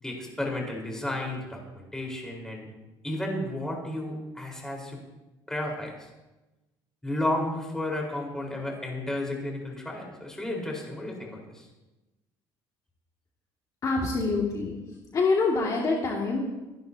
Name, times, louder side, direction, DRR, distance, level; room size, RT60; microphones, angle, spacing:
voice 1, 0.0-2.7 3.0-5.0 5.5-6.1 7.0-11.7, left 1 dB, 5° left, -2 dB, 4.5 m, -32 dB
voice 2, 13.8-14.8 15.1-16.4, left 3 dB, 40° left, -2 dB, 2.3 m, -25 dB
27.5 x 11.5 x 2.9 m, 1.0 s
cardioid pair, 125°, 9 cm